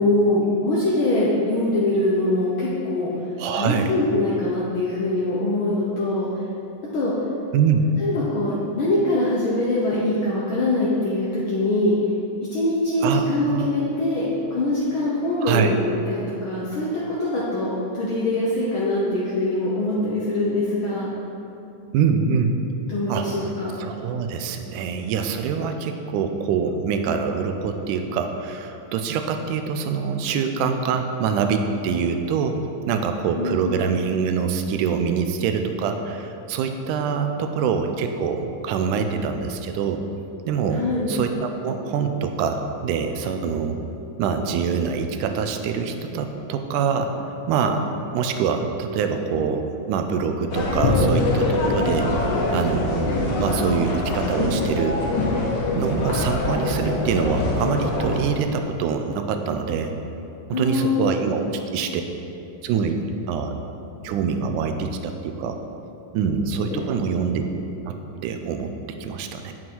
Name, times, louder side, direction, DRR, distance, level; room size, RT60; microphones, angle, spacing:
voice 1, 0.0-3.1 3.5-6.4 6.9-7.1 8.0-11.9 12.5-15.8 16.1-21.1 22.9-23.7 33.4-33.7 40.7-41.1 60.5-61.1 66.7-66.8, left 2 dB, 65° left, -6 dB, 1.2 m, -23 dB
voice 2, 3.4-3.9 7.5-8.0 13.0-13.7 15.4-15.7 21.9-22.6 23.1-23.3 23.8-32.6 32.9-40.0 40.5-43.8 44.2-47.9 48.1-55.0 55.8-59.9 60.5-62.0 62.6-63.0 63.3-63.6 64.0-65.6 66.1-67.5 67.9-68.0 68.2-69.5, right 6 dB, 85° right, 6 dB, 2.2 m, -25 dB
sound 1, 50.5-58.2, left 2 dB, 90° left, 0.9 m, -23 dB
8.6 x 7.4 x 4.6 m, 2.8 s
omnidirectional pair, 3.6 m